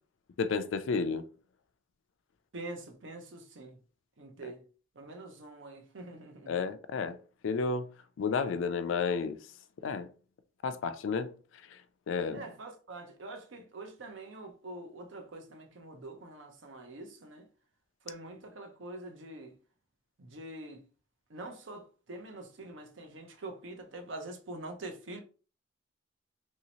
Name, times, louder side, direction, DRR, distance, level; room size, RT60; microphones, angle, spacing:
voice 1, 0.4-1.2 4.4-4.5 6.5-7.2 7.4-7.9 8.2-9.4 9.8-10.1 10.6-11.3 12.1-12.4, left 5 dB, 75° left, 0.4 m, -31 dB
voice 2, 2.5-3.8 4.2-4.6 5.0-6.6 12.3-17.5 18.0-19.5 20.2-20.8 21.3-25.2, right 2 dB, 70° right, 0.7 m, -45 dB
3.1 x 2.7 x 2.9 m
head